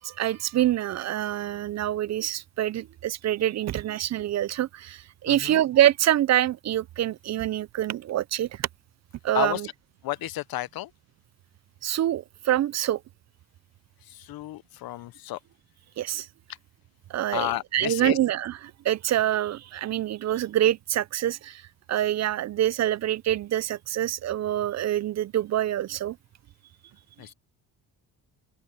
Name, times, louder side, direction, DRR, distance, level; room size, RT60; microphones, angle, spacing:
voice 1, 0.0-8.7 9.2-9.7 11.8-13.0 16.0-16.3 17.1-18.6 18.8-21.6 21.9-26.2, right 12 dB, 45° right, 0.4 m, -26 dB
voice 2, 5.3-5.6 9.3-9.6 10.0-10.9 14.1-15.4 17.3-18.2 27.2-27.3, left 15 dB, 70° left, 0.8 m, -32 dB
open air
cardioid pair, 90°, 37 cm